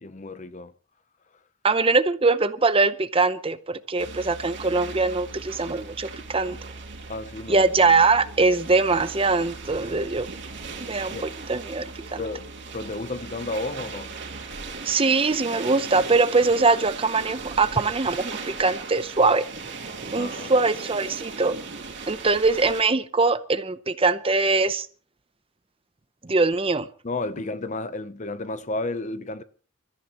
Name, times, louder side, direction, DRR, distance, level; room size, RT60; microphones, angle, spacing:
voice 1, 0.0-0.7 7.1-7.6 11.1-11.3 12.2-14.1 20.1-20.5 27.0-29.4, left 2 dB, 35° left, 0.8 m, -32 dB
voice 2, 1.6-6.6 7.5-10.3 10.9-12.2 14.8-19.5 20.1-21.6 22.1-24.9 26.2-26.9, right 3 dB, 30° right, 0.7 m, -22 dB
sound 1, 4.0-22.8, right 4 dB, 60° right, 2.8 m, -38 dB
Musical instrument, 4.0-14.8, right 1 dB, 85° right, 1.2 m, -44 dB
27.5 x 14.0 x 3.0 m
head